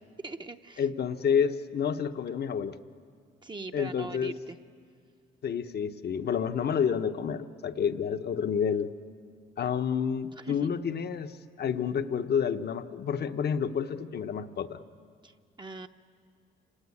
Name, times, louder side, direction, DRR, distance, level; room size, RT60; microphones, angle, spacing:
voice 1, 0.2-0.8 3.4-4.6 10.4-10.7 15.2-15.9, right 3 dB, 25° right, 5 dB, 0.8 m, -41 dB
voice 2, 0.8-2.8 3.7-4.3 5.4-8.9 9.6-14.8, left 7 dB, 55° left, 9 dB, 1.0 m, -29 dB
28.0 x 18.0 x 8.6 m, 2.1 s
cardioid pair, 90°, 20 cm